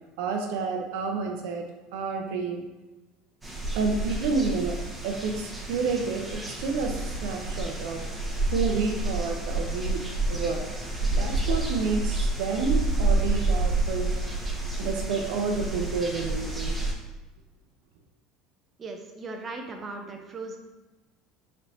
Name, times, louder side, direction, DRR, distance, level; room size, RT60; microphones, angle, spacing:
voice 1, 0.2-1.6 1.9-2.6 3.7-4.8 5.0-8.0 8.5-10.0 10.3-10.7 11.2-14.1 14.8-16.8, right 4 dB, 80° right, 3 dB, 0.6 m, -29 dB
sound 1, 3.4-16.9, right 2 dB, 5° right, 1.1 m, -29 dB
voice 2, 18.8-20.6, right 3 dB, 30° right, 3 dB, 0.6 m, -38 dB
4.2 x 3.2 x 2.7 m, 1.1 s
supercardioid pair, 110°, 0 cm